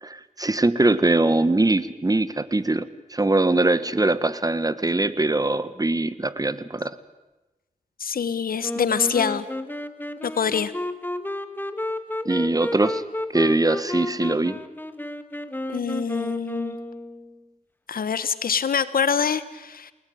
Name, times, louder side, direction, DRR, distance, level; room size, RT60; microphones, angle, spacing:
voice 1, 0.0-6.9 12.2-13.0 13.3-14.6, right 2 dB, 25° right, 15 dB, 1.5 m, -22 dB
voice 2, 8.0-9.4 10.2-10.7 15.7-16.8 17.9-19.9, left 6 dB, 80° left, 15 dB, 1.4 m, -25 dB
Wind instrument woodwind instrument, 8.6-17.4, left 1 dB, 15° left, 1.8 m, -32 dB
30.0 x 19.0 x 9.5 m, 1.1 s
cardioid pair, 65°, 15 cm